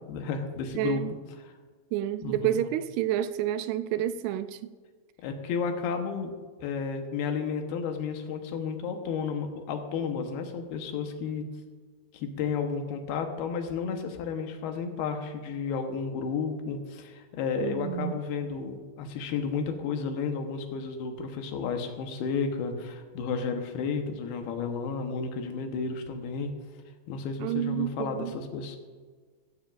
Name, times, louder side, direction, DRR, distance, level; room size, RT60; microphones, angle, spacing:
voice 1, 0.1-1.0 1.4-1.5 2.2-2.6 5.2-6.3 6.6-11.5 12.1-26.5 27.1-28.8, left 5 dB, 70° left, 2.9 m, -32 dB
voice 2, 0.8-1.1 1.9-4.6 17.6-18.2 27.4-28.3, right 11 dB, 85° right, 2.4 m, -29 dB
16.0 x 15.0 x 2.5 m
omnidirectional pair, 4.9 m